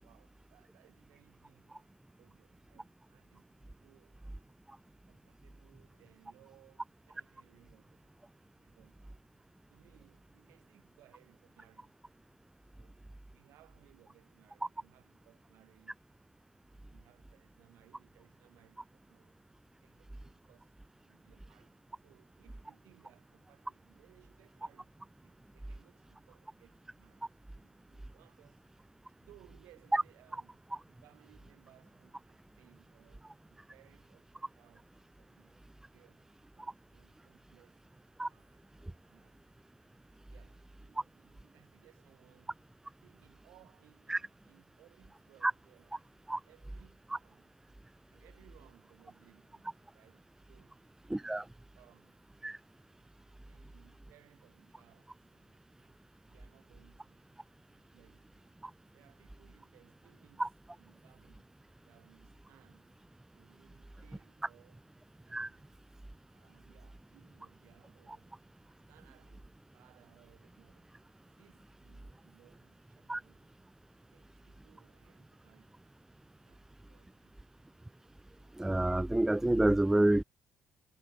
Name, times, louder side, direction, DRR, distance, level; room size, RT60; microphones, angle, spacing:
voice 1, 0.0-4.6 4.9-8.1 8.6-9.3 9.7-12.0 12.7-16.0 16.7-19.4 19.7-20.8 21.0-28.7 29.1-39.5 40.3-42.6 43.0-45.9 46.3-47.5 48.1-50.8 51.2-52.3 53.4-57.3 57.5-58.6 58.9-61.6 61.9-62.9 63.3-64.9 65.2-65.7 66.3-68.4 68.9-71.0 71.3-73.6 74.0-75.8 76.4-77.4, right 17 dB, 75° right, 7.9 m, -66 dB
voice 2, 51.1-51.4 52.4-52.6 60.4-60.5 65.3-65.5 73.1-73.2 78.6-80.2, right 1 dB, 10° right, 0.5 m, -28 dB
hypercardioid pair, 50°, 5 cm